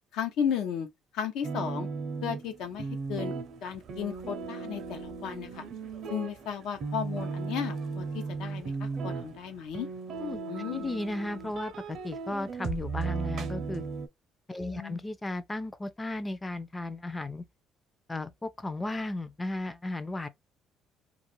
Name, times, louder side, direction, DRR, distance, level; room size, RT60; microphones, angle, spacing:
voice 1, 0.1-0.9 1.1-1.9 2.2-3.3 3.6-5.6 6.1-9.9 10.5-10.8 14.7-15.0, left 8 dB, 75° left, 0.7 m, -34 dB
sound 1, 1.4-14.1, right 4 dB, 60° right, 0.5 m, -36 dB
voice 2, 10.2-13.8 14.5-17.4 18.1-20.3, left 2 dB, 15° left, 0.4 m, -35 dB
2.4 x 2.1 x 3.0 m
cardioid pair, 95°, 0 cm